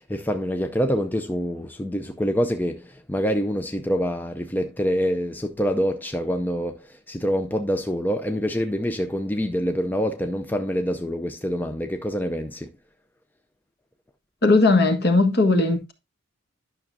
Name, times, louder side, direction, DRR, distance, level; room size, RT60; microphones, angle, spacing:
voice 1, 0.0-12.7, equal, 10° left, 0.5 m, -26 dB
voice 2, 14.4-15.9, left 3 dB, 50° left, 1.6 m, -18 dB
11.5 x 6.2 x 2.7 m
head